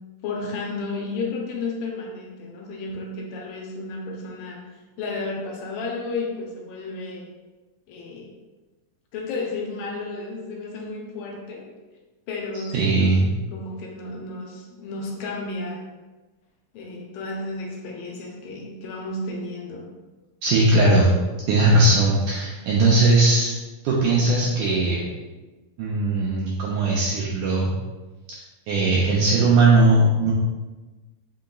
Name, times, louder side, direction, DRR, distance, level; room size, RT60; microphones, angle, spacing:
voice 1, 0.2-4.7 5.0-7.3 7.9-8.3 9.1-11.7 12.3-13.2 13.5-15.9 16.7-19.9, left 3 dB, 80° left, 0 dB, 2.2 m, -32 dB
voice 2, 12.7-13.3 20.4-21.1 21.5-23.5 23.8-25.0 25.8-27.7 28.7-30.3, right 2 dB, 90° right, -4 dB, 1.7 m, -19 dB
5.5 x 3.8 x 2.3 m, 1.2 s
omnidirectional pair, 4.1 m